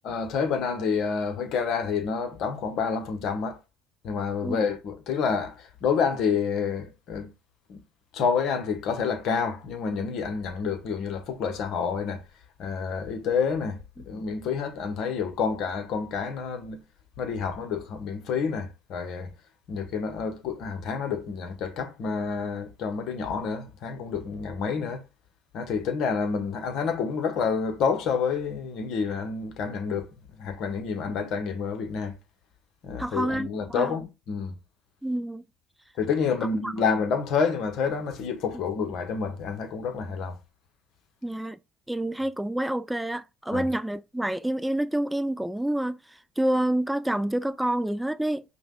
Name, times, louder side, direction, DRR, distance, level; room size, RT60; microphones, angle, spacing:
voice 1, 0.0-3.6 4.0-7.3 7.7-7.8 8.1-12.2 12.6-16.8 17.2-19.3 19.7-25.0 25.5-32.1 32.8-34.5 36.0-40.4 43.5-43.7, left 6 dB, 55° left, 1.0 m, -28 dB
voice 2, 33.0-34.0 35.0-35.4 36.6-36.7 41.2-41.6 41.9-48.4, right 1 dB, 5° right, 0.3 m, -28 dB
5.1 x 2.3 x 3.6 m
hypercardioid pair, 65°, 0 cm